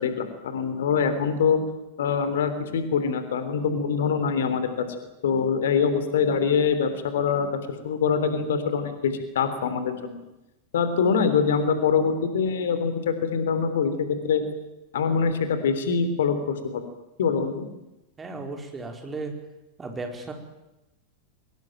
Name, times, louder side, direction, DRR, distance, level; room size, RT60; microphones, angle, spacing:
voice 1, 0.0-1.6 2.0-4.8 5.2-7.5 7.8-10.2 10.7-14.4 14.9-16.4 16.6-16.8 17.2-17.7, left 6 dB, 60° left, 10 dB, 3.4 m, -24 dB
voice 2, 18.2-19.4 19.8-20.3, right 3 dB, 15° right, 4 dB, 4.5 m, -35 dB
24.0 x 21.0 x 9.1 m, 0.95 s
figure-of-eight pair, 90°, 0 cm